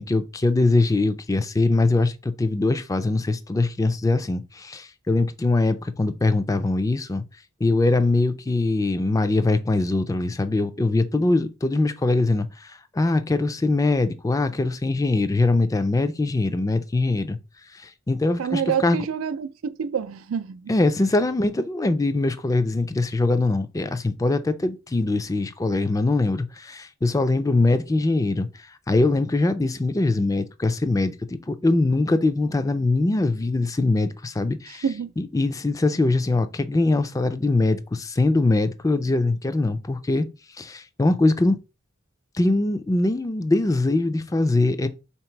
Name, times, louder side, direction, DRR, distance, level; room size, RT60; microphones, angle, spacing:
voice 1, 0.0-7.2 7.6-17.4 17.7-19.0 20.7-28.5 28.9-34.8 35.2-40.3 40.6-41.6 42.3-44.9, left 2 dB, 15° left, 0.3 m, -22 dB
voice 2, 18.4-20.7 34.8-35.1, right 7 dB, 90° right, 0.4 m, -27 dB
3.9 x 2.9 x 4.5 m
head